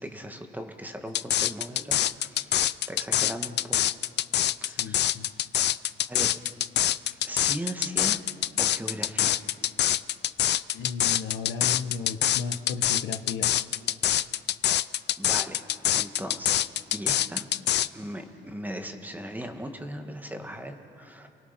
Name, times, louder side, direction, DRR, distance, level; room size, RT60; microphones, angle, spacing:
voice 1, 0.0-2.6 2.9-3.8 4.6-5.1 6.1-6.4 7.2-8.2 8.6-9.4 9.7-9.9 15.2-15.6 15.9-16.6 16.9-17.4 17.9-21.3, equal, 10° right, 5 dB, 1.8 m, -38 dB
sound 1, 1.1-17.9, left 12 dB, 60° left, 0.5 m, -25 dB
voice 2, 4.6-5.3 10.7-13.5, left 5 dB, 80° left, 7 dB, 1.2 m, -35 dB
29.0 x 20.0 x 5.9 m, 2.9 s
cardioid pair, 90°, 20 cm